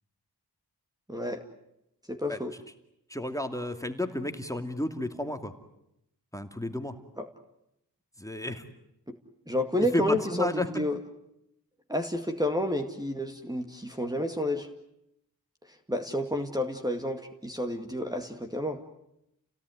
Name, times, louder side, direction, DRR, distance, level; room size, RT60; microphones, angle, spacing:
voice 1, 1.1-1.4 2.1-2.5 7.2-7.3 9.5-11.0 11.9-14.7 15.9-18.8, left 1 dB, 10° right, 3 dB, 2.2 m, -30 dB
voice 2, 3.1-5.5 6.3-7.0 8.2-8.6 9.9-10.7, left 1 dB, 10° left, 6 dB, 2.5 m, -32 dB
29.5 x 17.5 x 9.5 m, 0.81 s
cardioid pair, 40°, 40 cm